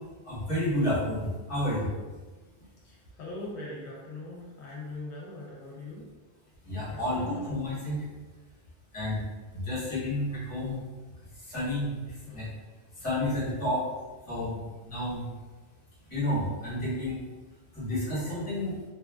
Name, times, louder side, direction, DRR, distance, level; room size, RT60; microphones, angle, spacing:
voice 1, 0.2-1.9 6.6-8.0 8.9-9.2 9.5-10.8 11.4-12.5 13.0-13.8 14.3-15.2 16.1-17.3 17.7-18.8, left 1 dB, 30° left, -9 dB, 1.2 m, -30 dB
voice 2, 2.8-6.1 6.9-7.5 12.3-12.5, left 2 dB, 75° left, -4 dB, 0.9 m, -41 dB
2.9 x 2.4 x 2.2 m, 1.3 s
omnidirectional pair, 1.2 m